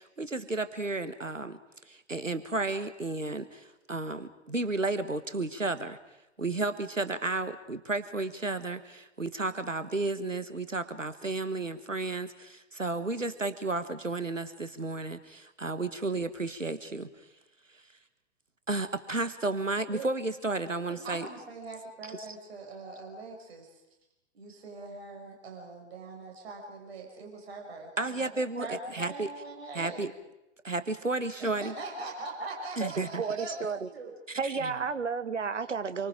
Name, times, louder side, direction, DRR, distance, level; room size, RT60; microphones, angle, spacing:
voice 1, 0.0-1.6 1.9-6.0 6.4-17.1 18.7-21.3 22.1-22.2 28.0-29.3 29.7-30.1 30.6-31.7 32.8-33.2 34.3-34.7, right 2 dB, 90° right, 12 dB, 1.5 m, -32 dB
voice 2, 21.0-23.8 24.3-30.1 31.4-34.1, right 3 dB, 55° right, 1 dB, 6.1 m, -42 dB
voice 3, 32.8-33.9 34.4-36.1, right 5 dB, 75° right, 12 dB, 1.4 m, -32 dB
27.5 x 24.5 x 5.1 m, 0.92 s
figure-of-eight pair, 110°, 37 cm